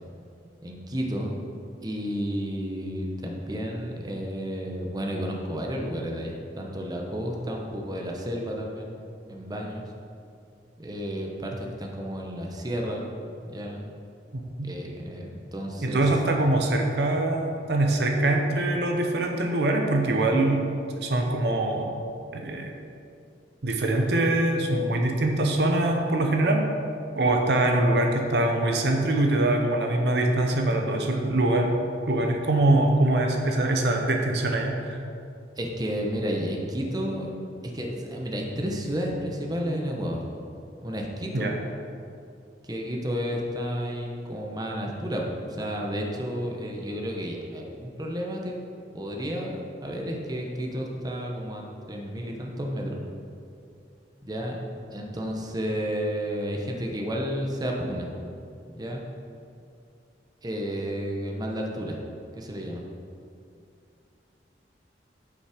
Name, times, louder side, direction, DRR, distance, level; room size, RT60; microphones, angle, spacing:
voice 1, 0.6-1.4 1.8-8.9 9.3-9.8 10.8-13.1 13.4-13.9 14.6-16.0 35.6-37.3 37.6-40.2 40.8-41.5 42.6-48.6 48.9-49.6 49.8-53.0 54.2-54.6 54.9-58.1 58.7-59.0 60.4-62.0 62.3-62.8, equal, 20° right, 0 dB, 0.9 m, -31 dB
voice 2, 15.8-20.7 21.0-21.9 22.3-22.7 23.6-26.7 27.2-31.7 32.1-35.0 41.3-41.5, right 2 dB, 65° right, 2 dB, 0.8 m, -23 dB
8.6 x 5.5 x 5.0 m, 2.5 s
head